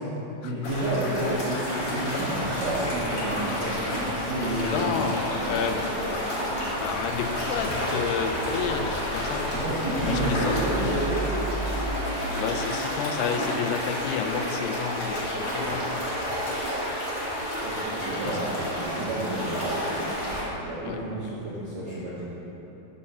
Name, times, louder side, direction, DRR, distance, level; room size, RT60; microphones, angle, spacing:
voice 1, 0.4-5.0 9.5-11.3 17.6-20.0 20.6-22.3, right 1 dB, 70° right, -9 dB, 1.6 m, -30 dB
sound 1, 0.6-20.4, equal, 50° left, 1.1 m, -30 dB
sound 2, 2.3-11.9, equal, 65° left, 2.3 m, -36 dB
voice 2, 4.6-5.2 5.5-6.3 6.8-9.5 9.9-10.6 12.3-16.1 18.2-18.4 20.8-21.0, left 7 dB, 85° left, 6 dB, 2.6 m, -31 dB
6.6 x 5.6 x 6.5 m, 3.0 s
omnidirectional pair, 4.6 m